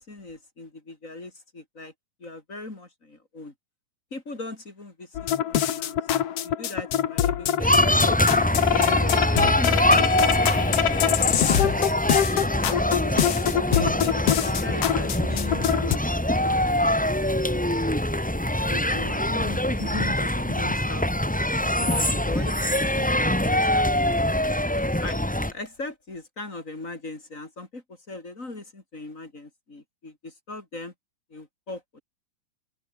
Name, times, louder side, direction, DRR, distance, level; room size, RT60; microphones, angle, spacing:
voice 1, 0.0-1.9 2.2-3.5 4.1-6.0 6.4-8.3 8.8-11.7 12.2-12.5 13.0-16.0 16.3-17.6 18.7-21.1 21.6-24.5 24.8-30.9 31.3-32.0, left 2 dB, 25° left, 3.7 m, -39 dB
sound 1, 5.1-16.0, left 10 dB, 55° left, 2.1 m, -24 dB
sound 2, 7.6-25.5, left 1 dB, 5° left, 0.6 m, -24 dB
open air
omnidirectional pair, 3.6 m